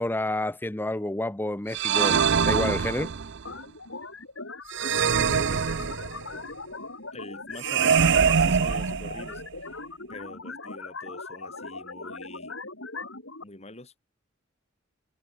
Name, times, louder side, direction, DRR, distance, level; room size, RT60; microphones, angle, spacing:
voice 1, 0.0-3.1, left 1 dB, 10° left, 0.7 m, -29 dB
sound 1, 1.7-3.4 4.7-6.4 7.6-9.5, right 6 dB, 60° right, 0.6 m, -23 dB
sound 2, 3.4-13.4, left 3 dB, 75° left, 8.0 m, -40 dB
voice 2, 5.1-5.9 7.1-12.6 13.4-14.0, left 2 dB, 35° left, 3.4 m, -45 dB
head